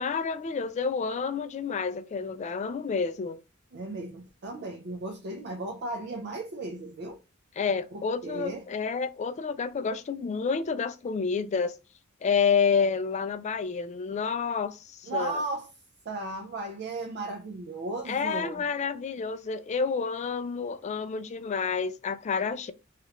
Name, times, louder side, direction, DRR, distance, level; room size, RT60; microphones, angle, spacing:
voice 1, 0.0-3.4 7.6-11.8 12.2-15.4 18.1-22.7, left 5 dB, 35° left, 0.3 m, -29 dB
voice 2, 3.7-7.2 7.9-8.6 15.1-15.7 16.1-18.6, right 2 dB, 55° right, 0.4 m, -35 dB
2.9 x 2.4 x 3.1 m
head